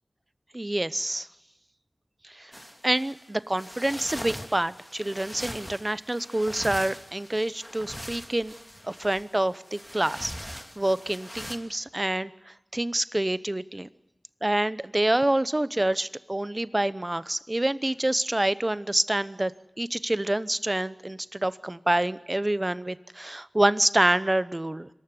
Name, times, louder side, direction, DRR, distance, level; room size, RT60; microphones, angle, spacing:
voice 1, 0.5-1.3 2.3-2.5 2.8-8.5 8.8-13.9 14.4-19.5 19.8-24.9, right 1 dB, 30° right, 15 dB, 0.8 m, -27 dB
sound 1, 2.5-11.6, equal, 5° left, 3.0 m, -41 dB
25.5 x 14.5 x 9.9 m, 0.94 s
wide cardioid pair, 50°, 0 cm